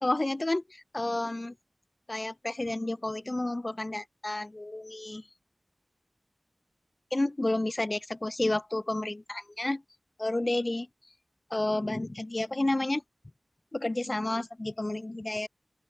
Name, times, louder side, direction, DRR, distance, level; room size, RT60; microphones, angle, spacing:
voice 1, 0.0-1.5 2.1-5.2 7.1-9.8 10.2-10.9 11.5-13.0 13.7-15.5, left 2 dB, 35° left, 0.8 m, -30 dB
open air
wide cardioid pair, 65°, 0 cm